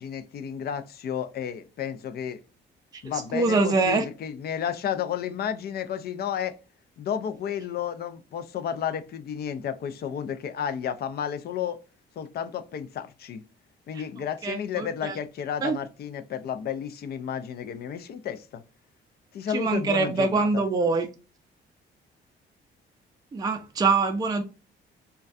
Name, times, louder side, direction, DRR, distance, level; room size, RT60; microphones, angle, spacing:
voice 1, 0.0-2.4 3.0-6.6 7.0-11.8 12.2-13.4 13.9-18.6 19.3-20.6, left 8 dB, 55° left, 0.4 m, -32 dB
voice 2, 3.3-4.0 13.9-14.0 14.4-15.2 15.6-15.8 19.5-21.1 23.3-24.4, right 4 dB, 20° right, 0.4 m, -24 dB
2.3 x 2.2 x 2.5 m
cardioid pair, 90°, 20 cm